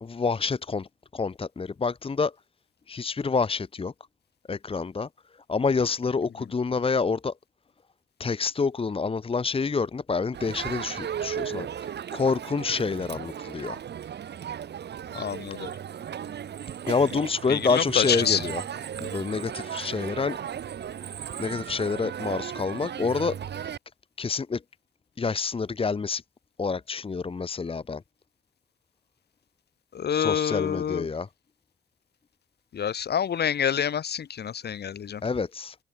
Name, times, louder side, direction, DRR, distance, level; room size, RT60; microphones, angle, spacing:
voice 1, 0.0-2.3 2.9-3.9 4.5-5.1 5.5-7.3 8.2-13.8 15.5-15.6 16.8-18.6 19.0-20.4 20.8-21.1 21.4-23.7 24.2-24.6 25.2-26.2 26.6-28.0 30.1-31.3 35.2-35.8, left 4 dB, 30° left, 1.3 m, -28 dB
Crowd, 10.3-23.8, right 9 dB, 60° right, 3.2 m, -36 dB
voice 2, 15.1-15.7 17.5-18.4 29.9-31.1 32.7-35.2, left 8 dB, 55° left, 4.5 m, -27 dB
open air
cardioid pair, 90°, 20 cm